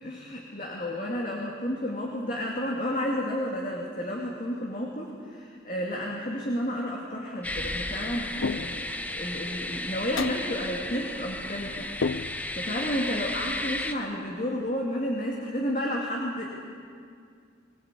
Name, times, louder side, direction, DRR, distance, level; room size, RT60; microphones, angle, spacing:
voice 1, 0.0-8.9 9.1-11.9 12.5-16.4, equal, 40° left, -2 dB, 2.5 m, -31 dB
sound 1, 7.4-13.9, left 1 dB, 10° left, 0.8 m, -34 dB
sound 2, 8.4-9.0 10.2-10.6 12.0-12.7, left 4 dB, 85° left, 0.6 m, -31 dB
23.5 x 20.5 x 8.4 m, 2.2 s
head